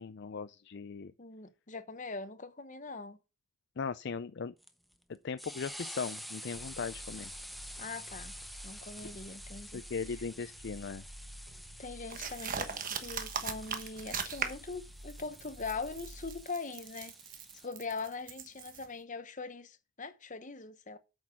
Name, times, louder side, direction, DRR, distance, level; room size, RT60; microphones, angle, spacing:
voice 1, 0.0-1.1 3.8-4.5 5.2-7.3 9.7-11.0, left 5 dB, 50° left, 0.4 m, -38 dB
voice 2, 1.2-3.2 7.8-8.3 8.6-9.8 10.1-10.2 11.8-17.1 17.5-21.0, left 4 dB, 35° left, 0.9 m, -42 dB
sound 1, 4.6-17.7, equal, ahead, 0.6 m, -49 dB
sound 2, 6.5-16.4, equal, 85° right, 3.5 m, -51 dB
sound 3, 12.1-14.7 15.1-18.9, right 6 dB, 40° right, 1.2 m, -39 dB
8.3 x 6.4 x 6.0 m
head